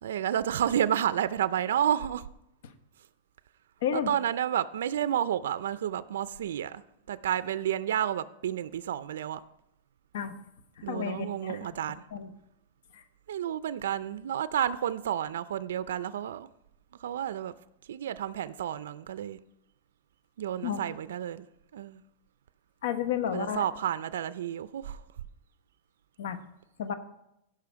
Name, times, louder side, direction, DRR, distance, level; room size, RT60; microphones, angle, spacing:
voice 1, 0.0-2.3 3.9-6.8 7.1-9.4 10.8-12.0 13.3-16.5 17.0-17.5 17.9-19.4 20.4-21.5 21.7-22.0 23.3-25.0, right 10 dB, 85° right, 0.4 m, -30 dB
voice 2, 3.8-4.1 10.1-10.3 10.9-11.6 12.1-12.3 12.9-13.0 20.6-20.8 22.8-23.6 26.2-26.4 26.8-26.9, left 8 dB, 70° left, 1.1 m, -31 dB
16.5 x 5.6 x 4.7 m
supercardioid pair, 165°, 0 cm